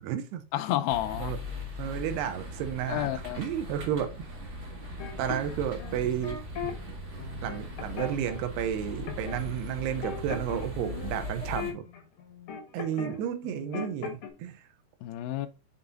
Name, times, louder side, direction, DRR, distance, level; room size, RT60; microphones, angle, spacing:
voice 1, 0.0-0.4 1.2-1.4 1.8-4.3 5.2-6.8 7.4-11.8 12.7-14.6, right 10 dB, 85° right, 2.9 m, -32 dB
voice 2, 0.5-1.3 2.9-3.4 15.0-15.5, left 13 dB, 85° left, 2.0 m, -30 dB
sound 1, 0.9-11.7, left 2 dB, 65° right, 0.7 m, -39 dB
sound 2, 5.0-6.7 7.2-8.4 9.1-9.4 9.7-13.2 13.4-14.3, left 6 dB, 70° left, 1.3 m, -38 dB
7.1 x 4.0 x 3.7 m
omnidirectional pair, 4.7 m